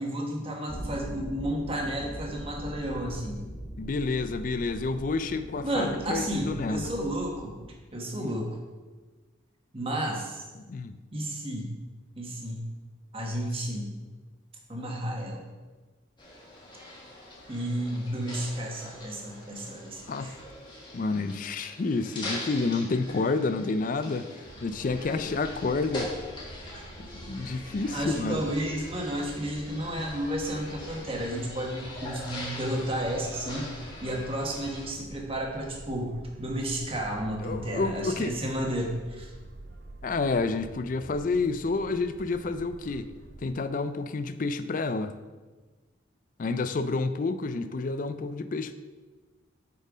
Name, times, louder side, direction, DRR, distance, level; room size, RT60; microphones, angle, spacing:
voice 1, 0.0-3.4 5.6-7.5 7.9-8.5 9.7-10.4 11.1-11.7 12.2-12.6 13.1-13.9 14.7-15.4 17.5-20.4 25.1-25.2 27.0-27.1 27.9-39.3, right 1 dB, 30° right, 0 dB, 1.2 m, -32 dB
sound 1, 0.7-7.7, equal, 10° right, 1.7 m, -41 dB
voice 2, 3.8-6.9 8.1-8.4 10.7-10.9 20.1-20.4 20.9-24.3 24.6-26.1 27.3-28.4 37.4-38.3 40.0-43.1 43.4-45.1 46.4-48.7, left 3 dB, 40° left, 11 dB, 0.4 m, -29 dB
sound 2, 16.2-34.9, left 1 dB, 25° left, 1.6 m, -42 dB
sound 3, 24.4-43.5, right 2 dB, 55° right, 0.6 m, -47 dB
8.3 x 4.4 x 5.0 m, 1.3 s
head